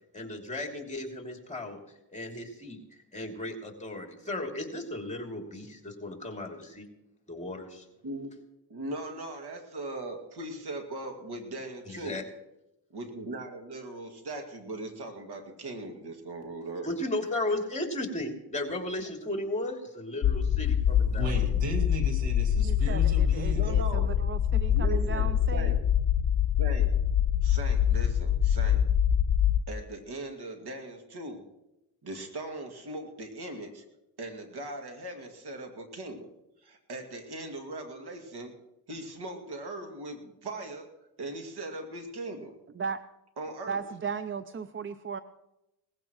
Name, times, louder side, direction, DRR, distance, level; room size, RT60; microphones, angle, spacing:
voice 1, 0.1-1.8 2.1-2.8 3.1-6.9 7.3-7.9 11.9-12.2 16.8-21.3, left 1 dB, 15° left, 1 dB, 3.0 m, -35 dB
voice 2, 8.0-8.4 8.7-12.2 12.9-16.9 23.5-24.1 24.7-25.8 26.6-26.9 27.4-28.8 29.7-31.4 32.0-33.8 34.2-36.3 36.6-38.5 38.9-40.9 41.2-42.5 43.4-43.8, right 2 dB, 65° right, 4 dB, 2.4 m, -39 dB
sound 1, 20.2-29.6, left 9 dB, 50° left, 0.9 m, -25 dB
voice 3, 21.1-23.7, right 2 dB, 90° right, 3 dB, 2.3 m, -36 dB
voice 4, 22.6-25.7 42.8-43.0 43.7-45.2, right 6 dB, 30° right, 13 dB, 0.5 m, -36 dB
19.0 x 15.5 x 3.1 m, 0.93 s
cardioid pair, 65°, 43 cm